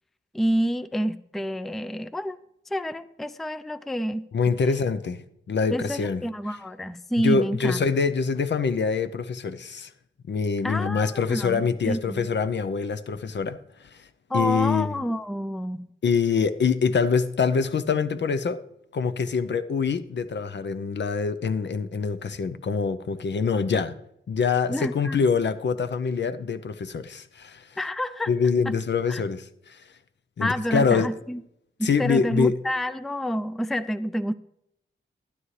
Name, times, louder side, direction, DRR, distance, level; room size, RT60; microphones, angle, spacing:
voice 1, 0.3-2.4 2.7-4.2 5.7-7.9 10.6-12.3 14.3-15.9 24.7-25.2 27.8-28.3 29.1-29.2 30.4-31.4 31.8-34.3, equal, ahead, 0.4 m, -28 dB
voice 2, 4.3-5.2 5.5-6.2 7.2-9.9 10.3-13.6 14.3-14.9 16.0-18.6 18.9-23.9 24.3-27.7 28.3-29.8 30.4-31.1 31.8-32.5, left 5 dB, 60° left, 0.6 m, -25 dB
12.5 x 11.0 x 3.2 m
wide cardioid pair, 80°, 20 cm